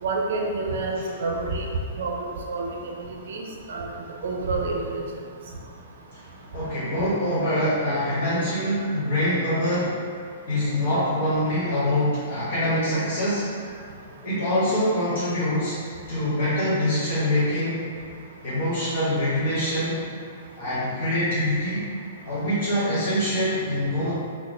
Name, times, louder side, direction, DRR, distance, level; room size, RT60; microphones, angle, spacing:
voice 1, 0.0-1.6 2.0-2.9 3.3-3.9 4.2-5.0, right 3 dB, 65° right, 0 dB, 0.5 m, -28 dB
voice 2, 6.5-10.0 10.5-13.5 14.2-15.8 16.1-17.8 18.4-20.0 20.5-21.9 22.2-24.1, left 1 dB, 50° left, -10 dB, 1.2 m, -24 dB
3.7 x 2.0 x 3.2 m, 2.2 s
hypercardioid pair, 120°, 0 cm